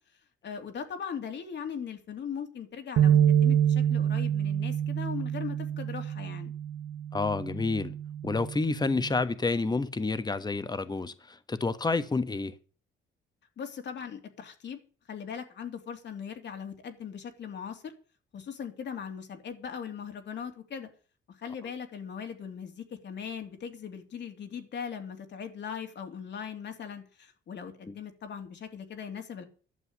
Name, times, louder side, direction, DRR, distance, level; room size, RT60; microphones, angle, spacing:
voice 1, 0.4-6.5 13.6-14.8 15.1-17.9 18.3-20.9 21.4-29.4, left 7 dB, 60° left, 3.0 m, -39 dB
sound 1, 3.0-9.2, right 9 dB, 85° right, 1.3 m, -27 dB
voice 2, 7.1-8.0 8.2-12.5 27.9-28.0, left 3 dB, 20° left, 1.3 m, -29 dB
11.5 x 7.3 x 8.7 m
cardioid pair, 90°, 20 cm